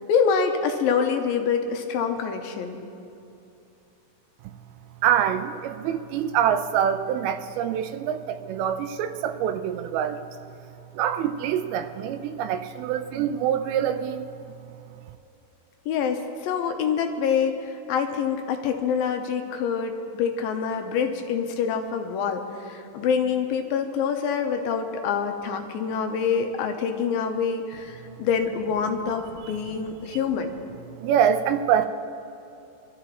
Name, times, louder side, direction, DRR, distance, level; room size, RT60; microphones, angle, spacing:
voice 1, 0.1-2.8 15.9-30.5, left 6 dB, 75° left, 5 dB, 2.5 m, -26 dB
voice 2, 5.0-10.3 10.9-14.3 30.1-30.2 31.0-31.9, right 9 dB, 85° right, 9 dB, 2.4 m, -25 dB
23.5 x 13.0 x 3.0 m, 2.8 s
omnidirectional pair, 4.5 m